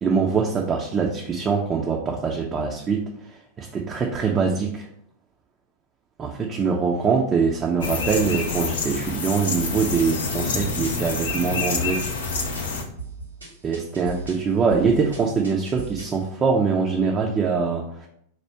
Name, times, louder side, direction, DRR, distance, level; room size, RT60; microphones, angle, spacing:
voice 1, 0.0-3.1 3.6-4.9 6.2-12.0 13.6-18.1, right 5 dB, 25° right, -1 dB, 0.5 m, -23 dB
sound 1, 7.8-12.8, left 4 dB, 60° left, 0.6 m, -27 dB
sound 2, 9.6-16.2, right 4 dB, 80° right, 1.2 m, -39 dB
4.4 x 2.4 x 4.4 m, 0.70 s
figure-of-eight pair, 90°, 0 cm